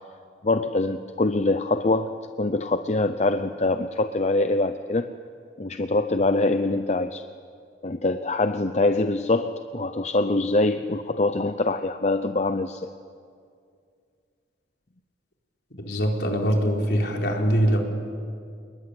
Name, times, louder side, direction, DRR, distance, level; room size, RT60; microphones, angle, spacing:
voice 1, 0.4-5.1 5.6-7.2 7.8-12.9, left 2 dB, 40° left, 9 dB, 0.7 m, -24 dB
voice 2, 15.8-17.8, equal, 65° left, 1 dB, 4.3 m, -23 dB
28.5 x 20.5 x 9.8 m, 2.3 s
head